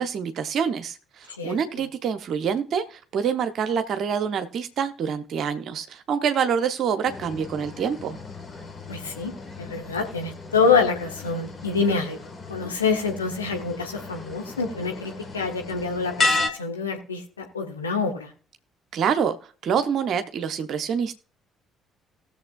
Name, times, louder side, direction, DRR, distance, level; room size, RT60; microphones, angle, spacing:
voice 1, 0.0-8.2 18.9-19.4 19.6-21.1, right 7 dB, 55° right, 9 dB, 0.7 m, -26 dB
sound 1, 7.0-16.5, left 3 dB, 35° left, 1.4 m, -33 dB
voice 2, 8.9-9.3 9.6-12.2 12.5-18.3, left 5 dB, 85° left, 2 dB, 1.1 m, -26 dB
19.0 x 7.0 x 2.3 m, 0.40 s
figure-of-eight pair, 45°, 0 cm